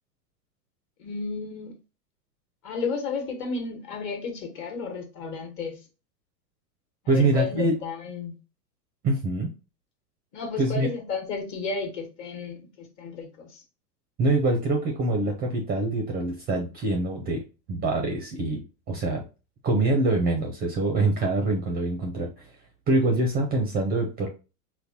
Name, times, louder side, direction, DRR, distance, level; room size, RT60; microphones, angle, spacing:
voice 1, 1.0-1.8 2.6-5.8 7.0-8.3 10.3-13.6, left 4 dB, 35° left, 1.2 m, -33 dB
voice 2, 7.1-7.7 9.0-9.5 10.6-10.9 14.2-17.4 17.7-18.6 18.9-19.2 19.6-22.5 22.9-24.3, right 2 dB, 20° right, 0.5 m, -24 dB
3.8 x 2.2 x 2.8 m
hypercardioid pair, 110°, 48 cm